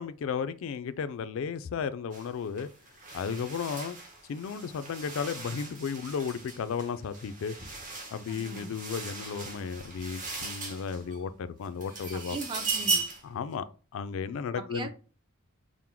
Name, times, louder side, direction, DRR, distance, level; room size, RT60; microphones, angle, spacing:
voice 1, 0.0-2.7 3.1-4.0 4.3-7.5 8.1-12.4 13.3-13.7 13.9-14.9, left 6 dB, 70° left, 0.3 m, -34 dB
sound 1, 2.1-2.3 2.6-11.2 11.6-13.3, right 3 dB, 40° right, 0.9 m, -37 dB
voice 2, 8.3-8.7 12.1-13.0 14.5-14.9, right 3 dB, 20° right, 0.4 m, -39 dB
3.7 x 2.1 x 4.4 m
head